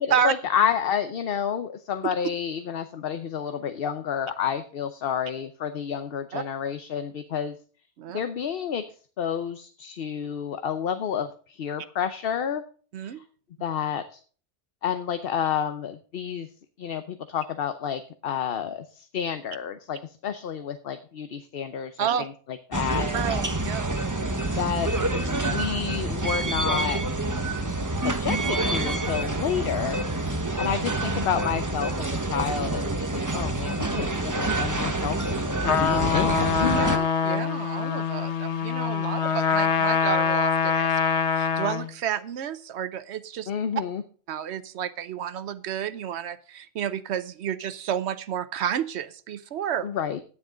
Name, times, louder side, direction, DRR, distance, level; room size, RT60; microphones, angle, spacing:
voice 1, 0.1-7.6 8.1-8.8 9.2-12.6 13.0-13.2 13.6-14.2 14.8-16.5 16.8-23.1 24.6-27.0 28.0-30.3 30.6-35.2 35.5-36.8 43.5-44.0 49.8-50.2, left 8 dB, 60° left, 10 dB, 0.9 m, -30 dB
sound 1, 22.7-37.0, right 2 dB, 20° right, 0.9 m, -27 dB
voice 2, 23.1-23.9 24.2-24.6 30.4-30.6 36.7-43.5 44.3-49.9, right 8 dB, 85° right, 14 dB, 1.0 m, -30 dB
Trumpet, 35.6-41.9, left 6 dB, 90° left, 1.2 m, -24 dB
12.5 x 9.7 x 3.8 m, 0.41 s
omnidirectional pair, 1.1 m